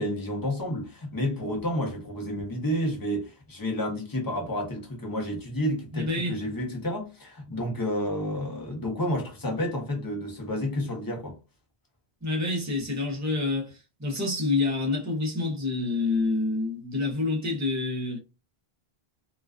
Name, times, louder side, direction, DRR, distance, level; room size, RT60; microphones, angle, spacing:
voice 1, 0.0-11.4, equal, 25° left, 0.6 m, -30 dB
voice 2, 5.9-6.4 12.2-18.2, left 3 dB, 20° right, 0.5 m, -27 dB
2.3 x 2.3 x 2.3 m
omnidirectional pair, 1.1 m